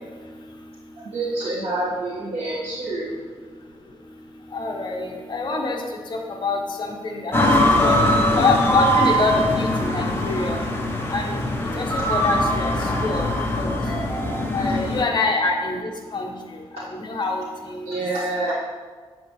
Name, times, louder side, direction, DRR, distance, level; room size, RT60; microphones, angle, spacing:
voice 1, 1.0-3.2 12.0-12.1 17.9-18.5, right 2 dB, 75° right, -9 dB, 1.9 m, -27 dB
voice 2, 4.5-5.8 6.1-7.5 7.8-8.0 8.3-10.6 11.1-11.4 11.7-12.7 13.0-13.7 14.5-16.3 16.7-17.9 18.5-18.6, left 3 dB, 45° left, 1 dB, 1.1 m, -25 dB
sound 1, 7.3-15.0, equal, 20° left, 1.1 m, -21 dB
8.4 x 7.6 x 3.2 m, 1.5 s
wide cardioid pair, 125°, 11 cm